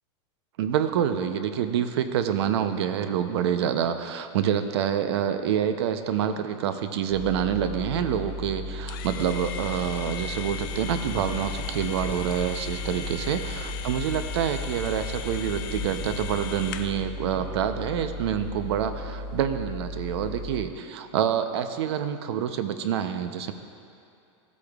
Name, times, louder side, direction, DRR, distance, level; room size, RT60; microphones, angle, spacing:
voice 1, 0.6-23.5, right 9 dB, 60° right, 9 dB, 0.6 m, -27 dB
sound 1, 7.1-20.6, left 1 dB, 20° right, 1.0 m, -36 dB
sound 2, 8.9-17.0, left 9 dB, 45° left, 0.4 m, -39 dB
sound 3, 10.7-16.4, left 7 dB, 65° left, 0.8 m, -41 dB
15.0 x 8.3 x 2.3 m, 2.6 s
supercardioid pair, 180°, 15 cm